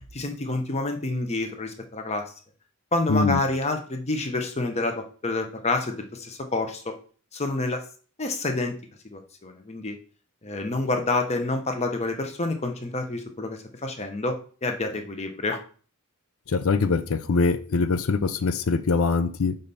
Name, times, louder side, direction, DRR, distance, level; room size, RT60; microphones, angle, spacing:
voice 1, 0.1-2.2 2.9-6.9 7.3-7.8 8.2-8.8 9.1-10.0 10.4-15.6, left 2 dB, 30° left, 0.9 m, -28 dB
voice 2, 3.1-3.4 16.5-19.6, left 4 dB, 65° left, 0.6 m, -23 dB
5.5 x 5.1 x 4.0 m
head